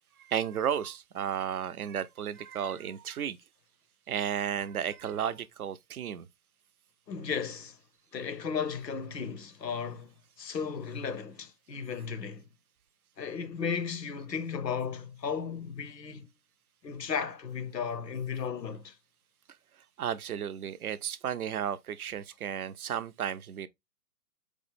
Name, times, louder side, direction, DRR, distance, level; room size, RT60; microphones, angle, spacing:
voice 1, 0.2-3.4 4.1-6.3 20.0-23.7, right 9 dB, 65° right, 0.6 m, -33 dB
voice 2, 7.1-7.8 8.1-12.5 13.2-16.3 16.8-19.0, left 6 dB, 90° left, 0.7 m, -35 dB
4.8 x 2.0 x 3.2 m
figure-of-eight pair, 130°, 48 cm